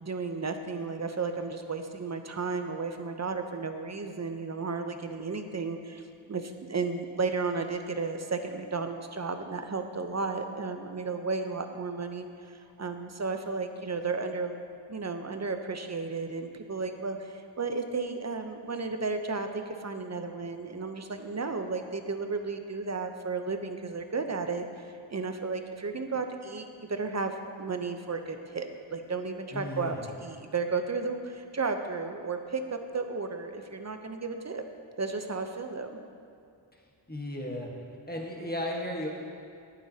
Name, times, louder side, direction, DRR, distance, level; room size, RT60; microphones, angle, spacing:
voice 1, 0.0-14.6 14.9-34.6 35.0-35.9, right 4 dB, 35° right, 7 dB, 0.7 m, -33 dB
voice 2, 29.5-30.1 36.7-36.8 37.1-37.7 38.1-39.1, left 1 dB, 20° left, -1 dB, 1.5 m, -35 dB
11.5 x 9.1 x 2.8 m, 2.4 s
cardioid pair, 40°, 49 cm